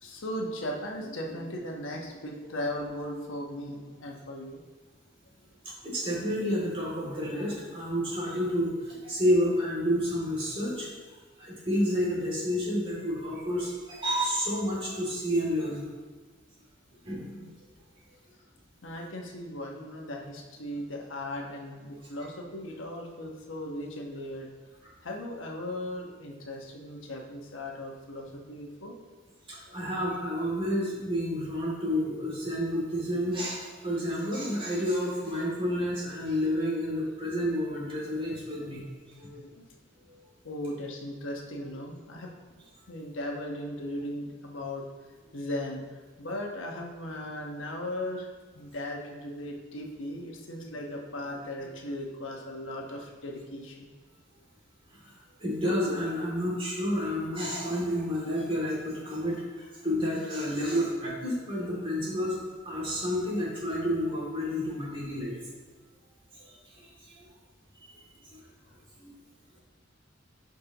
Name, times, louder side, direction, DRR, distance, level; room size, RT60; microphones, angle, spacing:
voice 1, 0.0-4.6 18.8-24.5 25.0-29.0 39.2-39.6 40.4-42.3 42.9-44.8 45.3-48.3 48.5-53.9, left 1 dB, 90° left, 0 dB, 1.2 m, -37 dB
voice 2, 5.8-10.9 11.4-15.8 17.0-17.5 29.5-38.8 40.1-40.2 55.0-55.1 55.4-65.4 66.4-67.3 67.9-68.0 68.3-68.4 69.0-69.1, equal, 30° right, -5 dB, 2.6 m, -30 dB
12.0 x 5.2 x 3.0 m, 1.3 s
head